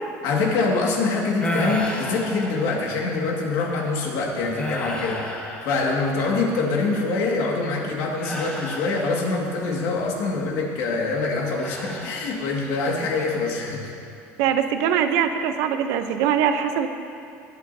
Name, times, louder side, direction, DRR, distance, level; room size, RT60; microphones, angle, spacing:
voice 1, 0.2-5.4 5.6-13.8, left 3 dB, 70° left, -1 dB, 1.9 m, -24 dB
sound 1, 1.4-3.1 3.7-3.9 4.5-6.4 8.2-9.5 11.6-12.7 13.1-13.6, left 1 dB, 20° left, 1.1 m, -32 dB
voice 2, 14.4-16.9, right 8 dB, 75° right, 8 dB, 0.7 m, -22 dB
20.0 x 8.5 x 2.7 m, 2.7 s
cardioid pair, 155°, 6 cm